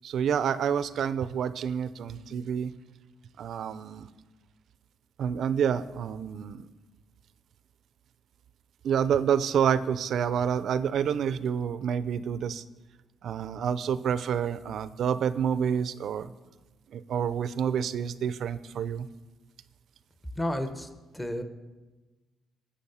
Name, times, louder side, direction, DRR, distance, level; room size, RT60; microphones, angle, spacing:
voice 1, 0.0-2.7 3.4-4.1 5.2-6.7 8.8-12.6 13.2-16.3 16.9-19.1, right 8 dB, 65° right, 15 dB, 0.5 m, -28 dB
voice 2, 20.4-20.9 21.1-21.4, left 1 dB, 10° left, 8 dB, 1.1 m, -31 dB
15.0 x 6.9 x 5.6 m, 1.2 s
cardioid pair, 90°, 0 cm